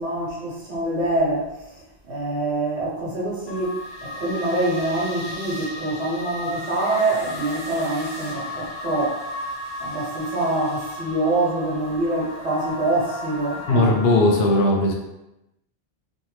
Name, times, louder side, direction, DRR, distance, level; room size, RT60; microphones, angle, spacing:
voice 1, 0.0-1.5 2.0-9.2 9.8-13.9, right 2 dB, 80° right, -6 dB, 1.1 m, -25 dB
sound 1, 3.5-14.2, left 1 dB, 35° left, 0.4 m, -34 dB
voice 2, 13.7-14.9, left 2 dB, 70° left, 0 dB, 0.8 m, -18 dB
2.6 x 2.2 x 3.1 m, 0.92 s
omnidirectional pair, 1.1 m